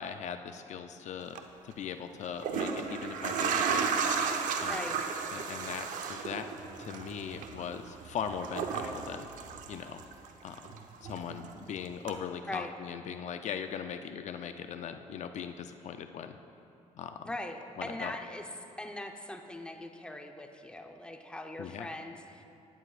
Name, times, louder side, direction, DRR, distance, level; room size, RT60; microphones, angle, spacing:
voice 1, 0.0-1.4 1.6-3.9 4.2-4.3 4.6-4.9 5.3-6.5 6.8-9.3 9.7-10.0 10.4-10.6 11.0-16.4 17.0-17.3 17.8-18.2 21.6-21.9, left 7 dB, 60° left, 7 dB, 0.5 m, -39 dB
sound 1, 1.2-1.4 2.2-10.3 10.6-11.6 12.1-12.2, right 6 dB, 80° right, 0.8 m, -34 dB
voice 2, 17.2-18.4 18.8-22.4, left 1 dB, 5° left, 4 dB, 0.8 m, -41 dB
17.5 x 11.0 x 2.5 m, 2.8 s
cardioid pair, 95°, 13 cm